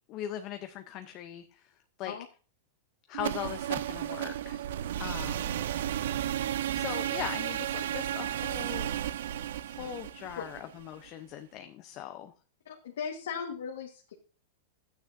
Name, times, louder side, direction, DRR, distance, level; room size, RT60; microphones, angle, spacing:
voice 1, 0.1-1.6 2.0-2.1 3.1-4.7 5.0-5.7 6.7-8.9 9.7-12.3, left 11 dB, 35° left, 7 dB, 0.7 m, -40 dB
sound 1, 3.1-11.1, right 11 dB, 75° right, 0.4 m, -33 dB
voice 2, 12.6-14.1, left 7 dB, 85° left, 0 dB, 1.4 m, -38 dB
11.5 x 9.0 x 2.6 m, 0.37 s
supercardioid pair, 145°, 0 cm